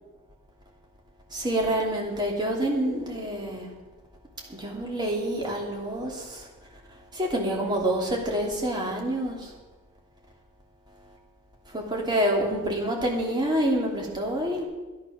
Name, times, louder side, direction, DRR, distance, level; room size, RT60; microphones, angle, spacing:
voice 1, 1.3-3.7 4.5-6.4 7.1-9.5 11.7-14.6, right 1 dB, 20° right, -1 dB, 2.8 m, -27 dB
11.5 x 11.0 x 6.4 m, 1.2 s
head